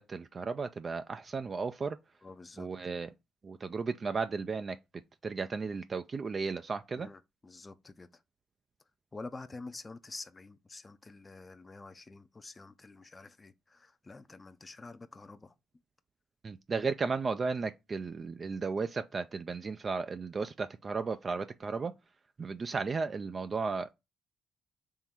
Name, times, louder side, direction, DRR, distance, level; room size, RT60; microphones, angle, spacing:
voice 1, 0.0-2.0 2.6-3.1 3.4-4.8 5.2-7.1 16.4-21.9 22.4-23.9, right 4 dB, 40° right, 0.3 m, -34 dB
voice 2, 2.2-2.7 6.9-8.2 9.1-15.5, left 3 dB, 25° left, 0.4 m, -48 dB
3.7 x 3.0 x 4.3 m
cardioid pair, 90°, 0 cm